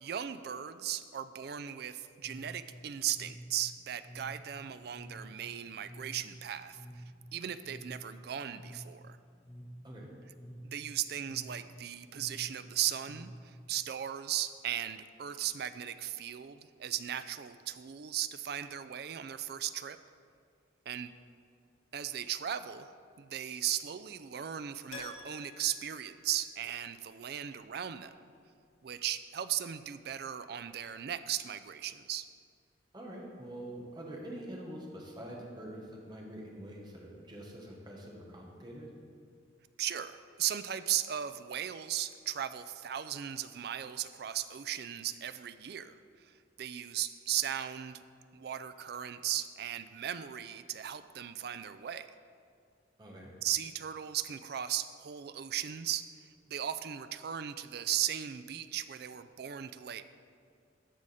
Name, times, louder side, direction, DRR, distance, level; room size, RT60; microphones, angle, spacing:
voice 1, 0.0-7.0 7.3-9.2 10.6-20.0 20.9-21.1 21.9-22.9 23.2-28.3 28.8-32.3 39.8-48.0 48.3-52.1 53.4-60.0, right 10 dB, 55° right, 12 dB, 0.3 m, -37 dB
sound 1, 2.2-13.8, equal, 5° left, 1.0 m, -50 dB
Keyboard (musical), 24.9-27.0 27.2-27.3 30.0-30.1 30.3-30.4, left 3 dB, 90° left, 1.4 m, -49 dB
voice 2, 32.9-38.9 53.0-53.3, right 1 dB, 20° right, -2 dB, 1.2 m, -45 dB
14.0 x 4.9 x 4.2 m, 2.2 s
head